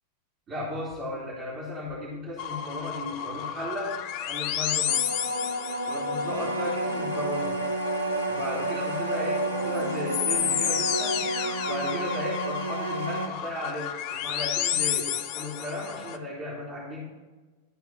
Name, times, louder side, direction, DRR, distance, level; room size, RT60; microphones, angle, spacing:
voice 1, 0.5-4.9 5.9-7.6 8.3-11.2 11.6-17.0, left 1 dB, 30° right, -7 dB, 2.9 m, -35 dB
sound 1, 2.4-16.2, left 10 dB, 45° left, 0.5 m, -32 dB
sound 2, 4.9-11.5, right 1 dB, 90° right, 0.9 m, -32 dB
sound 3, 6.2-13.3, right 2 dB, 90° left, 0.9 m, -32 dB
12.0 x 4.6 x 5.8 m, 1.3 s
figure-of-eight pair, 90°, 0 cm